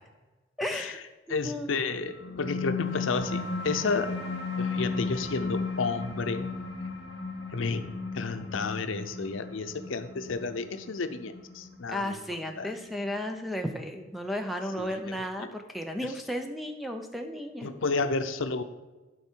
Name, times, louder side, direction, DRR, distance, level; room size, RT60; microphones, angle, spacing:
voice 1, 0.6-1.0 1.3-1.7 11.9-17.7, equal, ahead, 4 dB, 0.6 m, -34 dB
voice 2, 1.3-4.1 4.6-6.5 7.5-12.7 14.8-15.5 16.0-16.1 17.6-18.6, left 4 dB, 90° left, 9 dB, 0.6 m, -32 dB
sound 1, 2.1-13.0, left 4 dB, 60° left, 1.6 m, -35 dB
11.5 x 4.7 x 4.5 m, 1.2 s
head